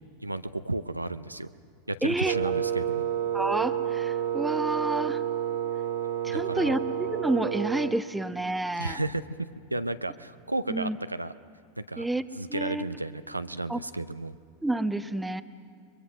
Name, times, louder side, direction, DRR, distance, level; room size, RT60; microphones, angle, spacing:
voice 1, 0.2-1.5 1.9-3.1 6.2-6.8 8.8-11.3 11.8-12.1 12.4-14.3, right 2 dB, 90° right, 11 dB, 0.6 m, -33 dB
voice 2, 2.0-2.3 3.3-5.2 6.2-6.8 7.1-9.0 10.7-11.0 12.0-12.2 12.5-12.8 13.7-13.8 14.6-15.4, right 2 dB, 5° right, 11 dB, 0.9 m, -29 dB
Wind instrument woodwind instrument, 2.2-8.0, right 10 dB, 65° right, 1.5 m, -30 dB
29.5 x 22.5 x 6.2 m, 2.4 s
figure-of-eight pair, 85°, 0 cm